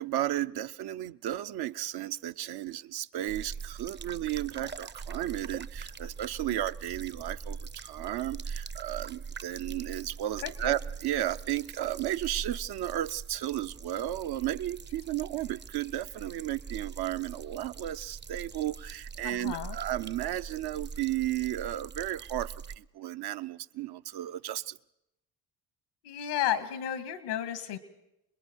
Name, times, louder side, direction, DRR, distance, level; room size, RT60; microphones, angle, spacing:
voice 1, 0.0-24.8, right 13 dB, 60° right, 0.7 m, -34 dB
sound 1, 3.3-22.8, right 5 dB, 25° right, 0.7 m, -42 dB
voice 2, 10.4-10.7 19.2-19.8 26.0-27.8, left 10 dB, 85° left, 2.0 m, -33 dB
28.5 x 21.5 x 4.6 m
hypercardioid pair, 60°, 45 cm